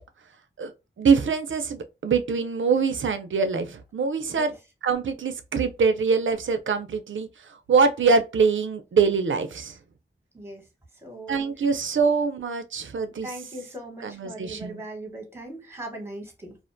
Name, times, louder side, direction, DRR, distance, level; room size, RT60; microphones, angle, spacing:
voice 1, 1.0-4.5 4.8-7.3 7.7-9.8 11.3-13.3 14.0-14.8, right 5 dB, 75° right, 0.4 m, -24 dB
voice 2, 10.3-10.7 10.9-11.5 13.2-16.6, right 1 dB, 10° right, 0.9 m, -39 dB
2.4 x 2.1 x 2.5 m
wide cardioid pair, 70°, 20 cm